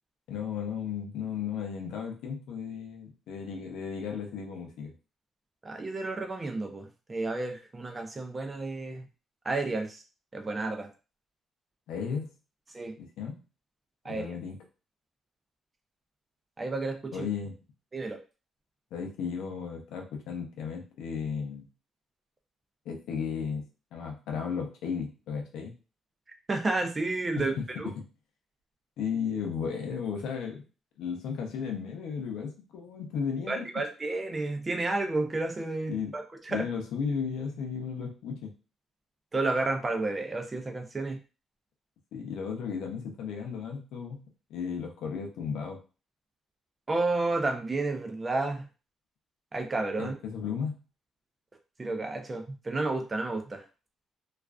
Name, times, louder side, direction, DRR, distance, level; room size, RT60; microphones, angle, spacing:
voice 1, 0.3-4.9 11.9-12.3 13.0-13.4 14.0-14.6 17.1-17.5 18.9-21.7 22.9-25.7 27.4-27.6 28.0-28.1 29.0-30.6 31.0-33.7 35.9-36.1 36.5-38.5 42.1-44.2 44.5-45.8 50.0-50.8, left 6 dB, 85° left, 2 dB, 0.6 m, -34 dB
voice 2, 5.6-9.1 9.4-10.0 10.3-10.9 12.7-13.0 14.0-14.4 16.6-17.2 17.9-18.2 26.5-27.9 33.5-36.7 39.3-41.2 46.9-48.7 49.5-50.1 51.8-53.6, right 2 dB, 25° right, 4 dB, 0.5 m, -31 dB
2.4 x 2.3 x 2.3 m, 0.33 s
cardioid pair, 90°, 0 cm